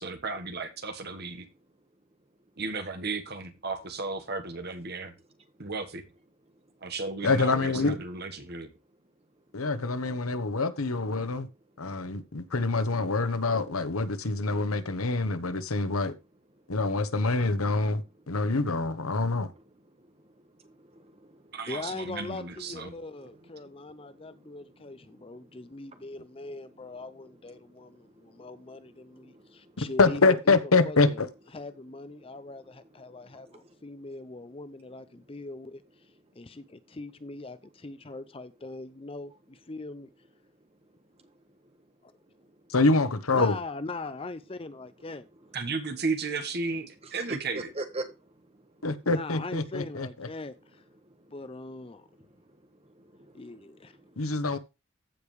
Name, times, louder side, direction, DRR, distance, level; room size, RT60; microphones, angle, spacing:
voice 1, 0.0-1.5 2.6-5.1 5.6-6.0 6.8-8.7 21.5-22.9 45.5-47.7, right 4 dB, 50° right, 1.5 m, -34 dB
voice 2, 7.2-8.0 9.5-11.5 11.8-16.1 16.7-19.5 29.8-31.3 42.7-43.6 48.8-50.3 54.2-54.6, left 3 dB, 90° left, 1.1 m, -26 dB
voice 3, 20.6-21.6 24.1-24.3 28.0-28.5 29.1-29.7 41.2-41.3 47.0-47.4 47.7-48.0 52.8-53.6 54.0-54.1, right 2 dB, 30° right, 1.5 m, -42 dB
voice 4, 21.7-30.6 30.8-31.2 31.5-36.1 36.4-40.1 42.0-42.1 43.3-45.3 49.0-50.8 51.3-52.0 53.3-54.0, left 2 dB, 25° left, 0.5 m, -41 dB
15.0 x 5.1 x 3.3 m
head